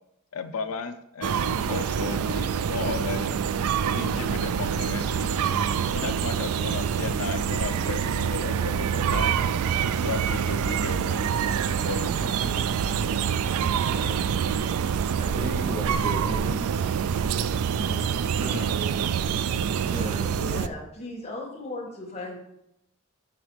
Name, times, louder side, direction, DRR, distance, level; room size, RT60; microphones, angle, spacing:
voice 1, 0.3-1.4 1.7-3.3 3.9-5.6 5.9-9.4 10.0-11.3 11.6-12.7, left 5 dB, 85° left, 7 dB, 0.6 m, -35 dB
sound 1, 1.2-20.7, right 7 dB, 90° right, 0.3 m, -26 dB
voice 2, 5.3-5.7 13.9-14.2 15.2-16.7 17.8-18.7 19.9-20.3, equal, 25° right, -1 dB, 0.7 m, -36 dB
voice 3, 16.2-16.5 16.8-16.9 20.4-22.4, left 2 dB, 30° left, -3 dB, 1.9 m, -37 dB
9.7 x 4.0 x 3.3 m, 0.80 s
head